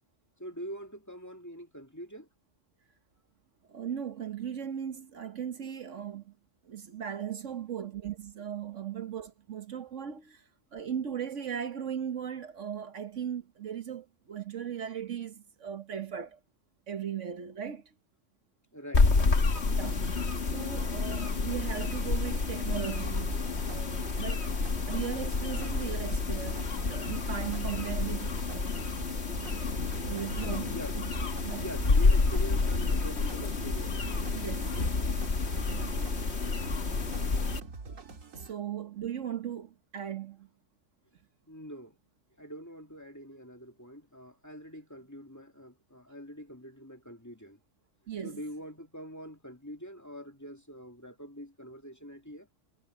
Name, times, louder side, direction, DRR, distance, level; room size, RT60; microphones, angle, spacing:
voice 1, 0.4-2.3 18.7-19.3 30.7-34.3 38.4-38.5 41.5-42.0 42.4-47.6 48.2-52.5, equal, 15° left, 2.2 m, -44 dB
voice 2, 3.7-6.3 6.6-10.4 10.7-16.4 16.9-17.9 19.7-20.0 20.5-23.3 23.7-24.5 24.9-28.8 29.1-29.2 29.6-31.1 31.4-31.7 34.3-34.8 35.7-36.1 38.3-40.5 48.1-48.4, right 9 dB, 70° right, 1.4 m, -38 dB
sound 1, 18.9-37.6, left 3 dB, 55° left, 2.0 m, -29 dB
sound 2, 21.7-38.5, right 4 dB, 90° right, 2.2 m, -45 dB
omnidirectional pair, 1.3 m